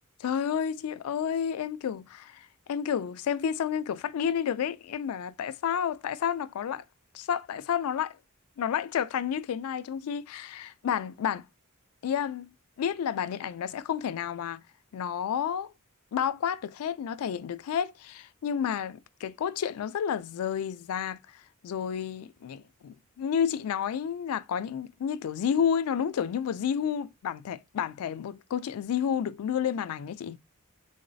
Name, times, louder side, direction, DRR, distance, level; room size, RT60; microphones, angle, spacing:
voice 1, 0.2-6.8 7.1-8.2 8.6-11.5 12.0-12.5 12.8-14.6 14.9-15.7 16.1-30.4, left 8 dB, 80° left, 0.3 m, -30 dB
4.0 x 3.1 x 2.6 m
head